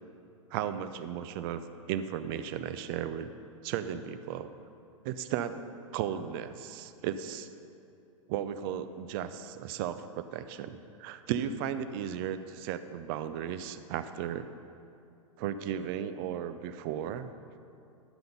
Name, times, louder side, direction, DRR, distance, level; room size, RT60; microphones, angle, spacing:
voice 1, 0.5-1.6 1.9-3.3 3.6-4.5 5.0-5.6 5.9-7.5 8.3-14.5 15.4-17.3, right 9 dB, 40° right, 11 dB, 0.5 m, -35 dB
11.0 x 5.6 x 5.4 m, 2.6 s
hypercardioid pair, 105°, 18 cm